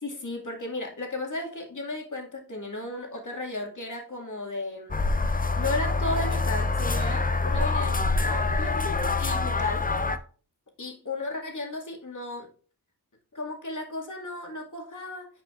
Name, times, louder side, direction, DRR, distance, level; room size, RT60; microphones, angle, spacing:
voice 1, 0.0-5.0 5.6-8.0 8.2-9.9 10.8-12.5 13.3-15.3, left 2 dB, 50° left, 2.3 m, -34 dB
sound 1, 4.9-10.2, left 3 dB, 20° left, 0.7 m, -25 dB
10.0 x 4.8 x 2.5 m
cardioid pair, 50°, 40 cm